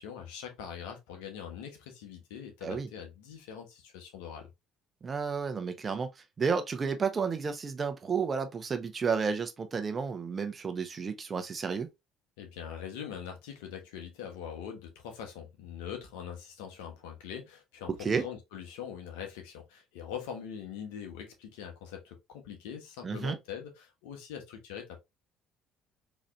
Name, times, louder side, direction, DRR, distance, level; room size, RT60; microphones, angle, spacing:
voice 1, 0.0-4.5 12.4-25.0, left 8 dB, 80° left, 1.1 m, -43 dB
voice 2, 5.0-6.1 6.4-11.9 18.0-18.2 23.0-23.4, right 5 dB, 35° right, 0.8 m, -31 dB
4.0 x 3.1 x 2.5 m
hypercardioid pair, 60°, 0 cm